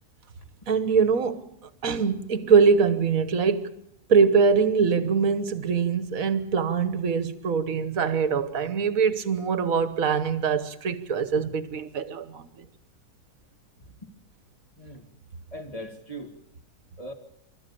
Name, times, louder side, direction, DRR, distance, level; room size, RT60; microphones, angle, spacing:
voice 1, 0.7-1.4 1.8-3.7 4.1-12.6, right 5 dB, 55° right, 1.6 m, -23 dB
voice 2, 13.8-14.1 14.8-15.1 15.5-16.4 17.0-17.1, equal, 20° left, 2.1 m, -40 dB
26.0 x 13.5 x 8.5 m
omnidirectional pair, 1.8 m